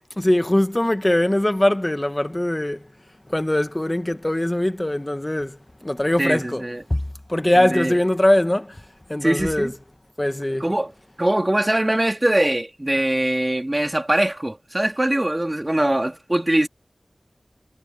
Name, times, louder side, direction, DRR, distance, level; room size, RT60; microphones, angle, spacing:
voice 1, 0.2-2.9 3.3-6.6 6.9-7.0 7.3-8.8 9.1-9.7 10.2-10.7, left 1 dB, 25° left, 1.6 m, -21 dB
voice 2, 6.2-6.8 7.5-8.0 9.2-9.7 10.6-10.9 11.2-16.7, right 1 dB, 30° right, 3.9 m, -22 dB
wide cardioid pair, 50°, 0 cm